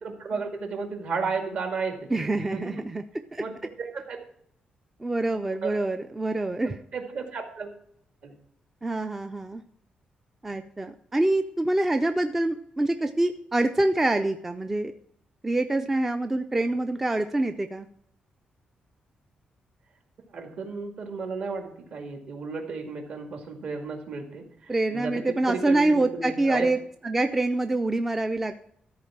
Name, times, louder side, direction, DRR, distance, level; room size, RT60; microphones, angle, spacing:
voice 1, 0.0-2.6 3.4-4.2 5.6-5.7 6.9-7.7 8.2-8.3 20.3-26.7, right 4 dB, 55° right, 3 dB, 2.0 m, -33 dB
voice 2, 2.1-3.0 3.3-3.4 5.0-6.8 8.8-9.6 10.4-14.9 15.4-17.9 24.7-28.6, right 2 dB, 10° right, 8 dB, 0.4 m, -26 dB
13.5 x 4.6 x 7.3 m, 0.69 s
wide cardioid pair, 180°, 3 cm